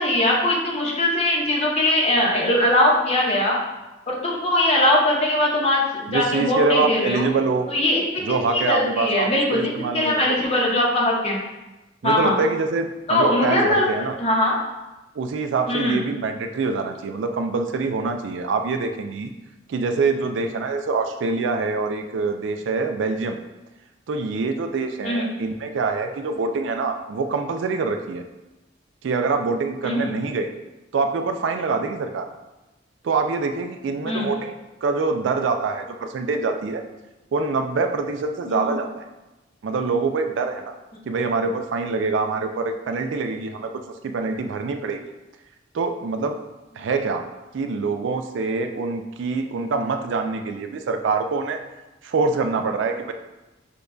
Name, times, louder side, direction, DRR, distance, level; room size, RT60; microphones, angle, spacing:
voice 1, 0.0-3.6 4.1-7.3 7.7-11.4 12.0-12.4 13.1-13.9 14.2-14.5 15.7-16.0 25.0-25.3 29.8-30.1 34.0-34.3 38.5-38.7, left 1 dB, 30° left, -2 dB, 0.8 m, -21 dB
voice 2, 6.1-7.7 8.2-10.4 12.0-14.2 15.2-19.3 19.7-23.4 24.1-28.2 29.0-30.5 30.9-32.3 33.0-34.5 34.8-36.8 37.3-39.0 39.6-40.8 41.1-43.7 44.0-45.0 45.7-46.4 46.8-47.2 47.5-51.6 52.0-53.1, right 4 dB, 65° right, 6 dB, 0.3 m, -25 dB
6.7 x 2.3 x 2.6 m, 1.0 s
head